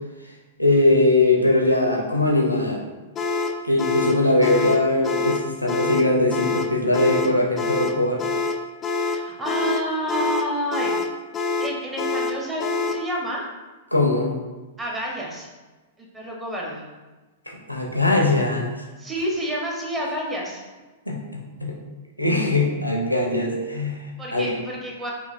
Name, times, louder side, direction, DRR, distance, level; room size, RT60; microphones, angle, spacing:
voice 1, 0.6-2.9 3.6-8.2 13.9-14.4 17.5-18.8 21.1-21.7 22.2-24.0 24.3-24.6, left 2 dB, 90° left, 0 dB, 0.7 m, -21 dB
sound 1, 3.2-13.1, left 3 dB, 25° left, 0.3 m, -26 dB
voice 2, 9.0-10.9 11.6-13.5 14.8-15.5 16.0-16.8 19.0-20.6 24.2-25.1, equal, 15° right, -2 dB, 0.9 m, -29 dB
4.9 x 2.8 x 2.5 m, 1.2 s
figure-of-eight pair, 100°, 0 cm